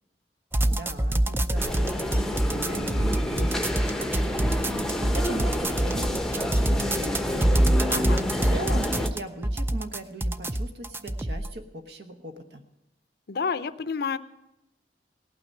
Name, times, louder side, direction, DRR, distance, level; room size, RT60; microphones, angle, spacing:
sound 1, 0.5-11.5, right 1 dB, 15° right, 0.4 m, -25 dB
voice 1, 0.6-7.7 8.5-12.6, right 1 dB, 65° right, 7 dB, 1.2 m, -39 dB
sound 2, 1.6-9.1, left 1 dB, 5° left, 0.7 m, -29 dB
voice 2, 7.9-8.2 13.3-14.2, left 5 dB, 60° left, 14 dB, 0.5 m, -29 dB
17.5 x 6.0 x 8.5 m, 0.92 s
head